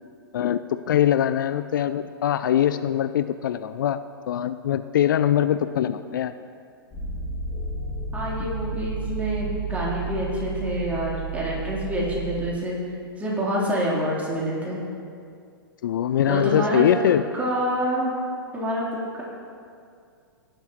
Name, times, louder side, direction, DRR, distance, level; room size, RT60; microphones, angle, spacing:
voice 1, 0.3-4.0 4.3-6.3 15.8-17.2, left 10 dB, 60° left, 12 dB, 0.4 m, -22 dB
sound 1, 6.9-12.5, right 4 dB, 20° left, 2.8 m, -31 dB
voice 2, 8.1-12.8 13.2-14.8 16.3-16.9 17.3-18.1 18.5-18.9 19.1-19.2, equal, 10° right, -6 dB, 3.6 m, -27 dB
17.5 x 11.5 x 3.1 m, 2.3 s
figure-of-eight pair, 105°, 12 cm